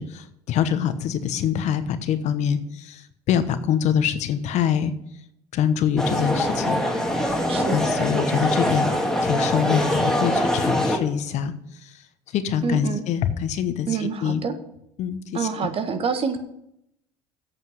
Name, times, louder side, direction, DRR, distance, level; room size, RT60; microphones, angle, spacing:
voice 1, 0.0-4.9 5.5-6.8 7.2-11.5 11.8-12.0 12.3-14.4 15.0-15.7, left 8 dB, 60° left, 11 dB, 1.1 m, -25 dB
sound 1, 6.0-11.0, equal, 5° left, 2.2 m, -23 dB
voice 2, 12.6-13.0 13.9-14.5 15.3-16.4, right 5 dB, 45° right, 8 dB, 1.5 m, -26 dB
8.3 x 7.2 x 8.0 m, 0.78 s
hypercardioid pair, 75°, 13 cm